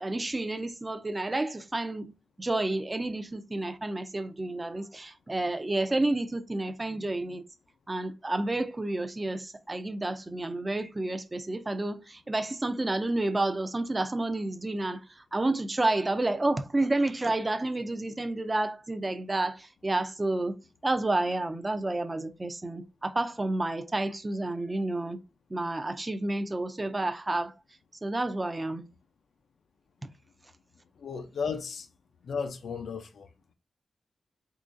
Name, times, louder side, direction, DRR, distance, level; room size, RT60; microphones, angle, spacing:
voice 1, 0.0-2.1 2.4-7.4 7.9-15.0 15.3-20.5 20.8-25.2 25.5-27.5 28.0-28.8, right 2 dB, 20° right, 0.4 m, -30 dB
voice 2, 31.0-31.9 32.2-33.3, left 6 dB, 65° left, 0.4 m, -34 dB
3.7 x 3.1 x 2.5 m
wide cardioid pair, 175°, 0 cm